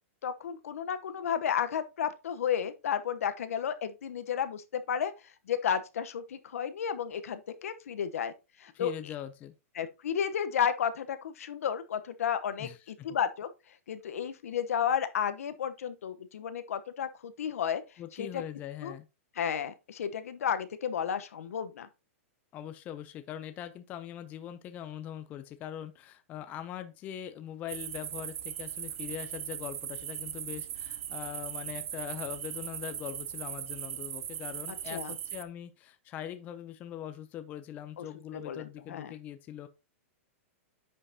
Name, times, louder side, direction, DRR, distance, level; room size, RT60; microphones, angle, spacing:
voice 1, 0.2-5.1 5.5-8.3 8.6-9.1 9.8-13.5 13.9-17.8 18.2-18.4 18.8-18.9 19.4-21.9 34.9-35.1 38.0-38.1 38.4-39.1, left 8 dB, 80° left, 1.0 m, -32 dB
voice 2, 8.7-9.5 12.6-13.1 18.0-19.1 22.5-39.7, left 10 dB, 20° left, 0.5 m, -42 dB
sound 1, 27.7-35.4, right 10 dB, 70° right, 0.7 m, -39 dB
9.6 x 5.6 x 2.8 m
hypercardioid pair, 160°, 8 cm